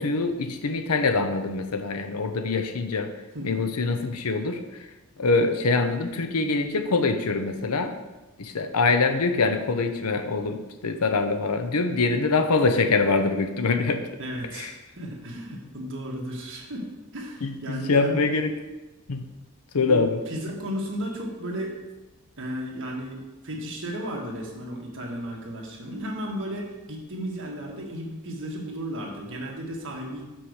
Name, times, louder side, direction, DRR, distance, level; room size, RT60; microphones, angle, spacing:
voice 1, 0.0-3.1 3.4-4.6 5.2-8.0 8.4-14.1 14.5-14.7 17.4-18.5 19.1-19.2 19.7-20.2, left 3 dB, 85° left, 7 dB, 0.7 m, -24 dB
voice 2, 14.2-16.8 17.1-18.2 19.7-21.8 22.4-30.3, equal, 60° right, -1 dB, 1.6 m, -34 dB
6.2 x 4.8 x 6.4 m, 1.1 s
head